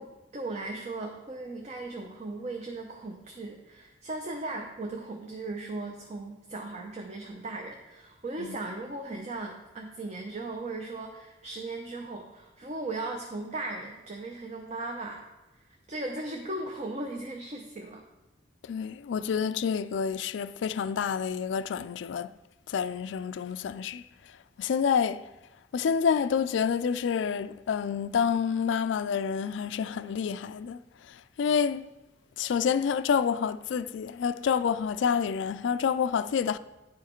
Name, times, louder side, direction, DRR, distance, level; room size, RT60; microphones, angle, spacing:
voice 1, 0.0-15.2 15.5-18.1, right 2 dB, 40° right, 0.7 m, -37 dB
voice 2, 18.6-22.3 22.7-24.0 24.6-25.3 25.7-30.8 31.1-31.8 32.4-36.6, left 7 dB, 70° left, 0.3 m, -28 dB
10.5 x 4.8 x 4.4 m
head